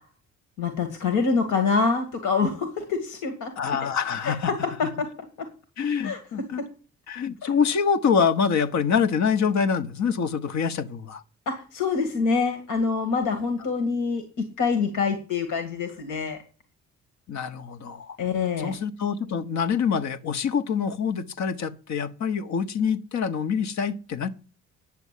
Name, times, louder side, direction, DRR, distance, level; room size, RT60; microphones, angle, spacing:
voice 1, 0.6-3.5 3.8-3.9 4.2-5.1 6.0-6.2 6.6-6.7 7.4-7.5 11.5-16.4 18.2-18.7, left 4 dB, 80° left, 2.1 m, -26 dB
voice 2, 3.6-4.5 4.8-4.9 5.8-6.6 7.1-11.2 17.3-18.2 18.6-24.3, left 6 dB, 65° left, 1.2 m, -25 dB
9.9 x 6.9 x 8.4 m
cardioid pair, 90°, 30 cm